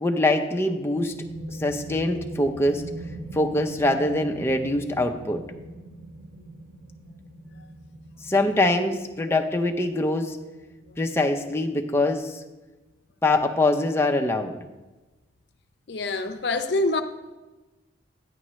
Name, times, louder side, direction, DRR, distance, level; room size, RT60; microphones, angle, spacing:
voice 1, 0.0-1.1 1.5-2.9 3.3-5.4 8.2-10.4 11.0-12.4 13.2-14.6, left 2 dB, 15° left, 0.5 m, -23 dB
sound 1, 0.7-12.0, right 1 dB, 70° right, 3.5 m, -41 dB
voice 2, 15.9-17.0, left 2 dB, 65° left, 0.6 m, -25 dB
9.8 x 9.7 x 3.1 m
head